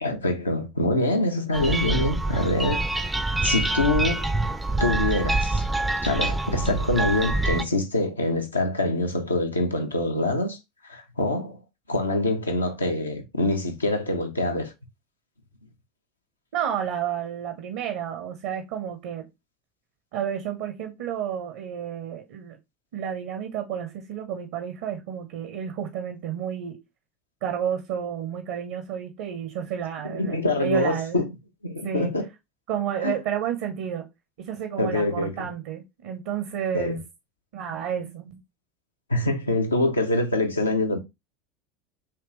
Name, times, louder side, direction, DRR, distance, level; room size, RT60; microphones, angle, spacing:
voice 1, 0.0-3.1 3.4-4.3 4.8-5.6 6.0-10.6 10.8-11.6 11.9-14.7 30.0-31.3 31.6-32.2 33.0-33.1 34.8-35.4 36.7-37.0 39.1-41.0, left 2 dB, 85° left, 0.6 m, -25 dB
sound 1, 1.5-7.6, right 2 dB, 10° right, 0.4 m, -26 dB
voice 2, 16.5-19.3 20.1-22.6 22.9-26.8 27.4-31.2 31.8-32.1 32.7-34.1 34.4-37.0 37.5-38.4, right 9 dB, 60° right, 0.6 m, -31 dB
3.4 x 2.9 x 3.1 m
figure-of-eight pair, 75°, 0 cm